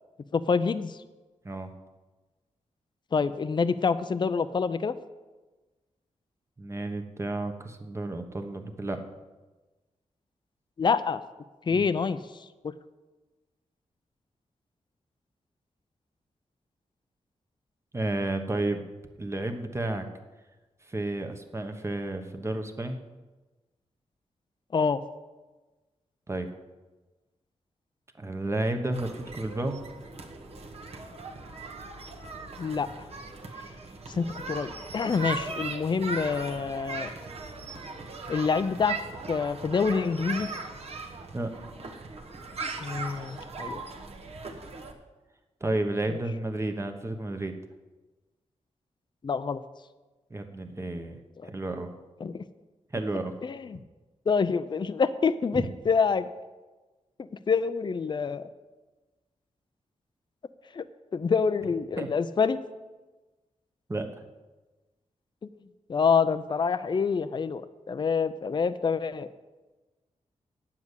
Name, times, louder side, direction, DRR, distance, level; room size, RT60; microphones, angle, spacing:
voice 1, 0.3-1.0 3.1-4.9 10.8-11.2 11.7-12.7 24.7-25.0 32.6-32.9 34.1-37.1 38.3-39.0 39.3-40.5 42.8-43.8 46.1-46.2 49.2-49.6 51.4-51.5 52.2-52.4 53.4-53.8 54.3-56.3 57.2-58.5 60.7-60.9 61.1-62.6 65.9-69.3, left 5 dB, 40° left, 12 dB, 0.5 m, -27 dB
voice 2, 6.6-9.0 11.7-11.8 17.9-18.8 19.2-20.0 20.9-23.0 26.3-26.5 28.2-29.8 41.3-41.5 45.6-47.5 50.3-51.2 51.4-51.9 52.9-53.3 55.5-55.7 62.0-62.1 63.9-64.1, right 2 dB, 20° right, 6 dB, 1.1 m, -31 dB
sound 1, 28.9-44.9, right 3 dB, 55° right, 1.3 m, -39 dB
9.3 x 7.3 x 8.3 m, 1.2 s
wide cardioid pair, 110°, 12 cm